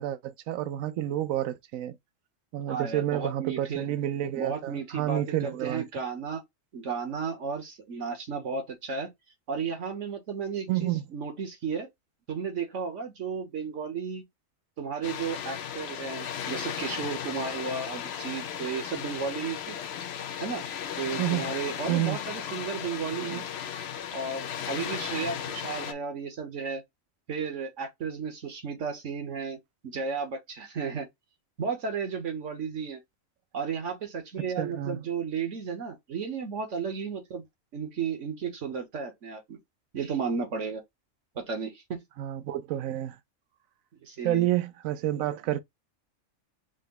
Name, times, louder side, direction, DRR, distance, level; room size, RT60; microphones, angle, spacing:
voice 1, 0.0-2.0 2.5-5.8 10.7-11.0 21.2-21.5 21.9-22.2 23.3-23.4 34.6-35.0 42.2-43.2 44.2-45.6, right 13 dB, 90° right, 1.0 m, -29 dB
voice 2, 2.7-3.8 4.4-6.4 6.7-9.1 9.5-11.9 12.3-14.2 14.8-19.8 20.4-20.6 21.0-23.4 24.1-26.8 27.3-29.6 29.8-31.1 31.6-33.0 33.5-37.4 37.7-39.6 39.9-40.8 41.3-42.0 44.0-44.5, right 5 dB, 65° right, 1.6 m, -33 dB
Water, 15.0-25.9, left 9 dB, 60° left, 0.8 m, -36 dB
4.9 x 2.2 x 3.8 m
omnidirectional pair, 1.4 m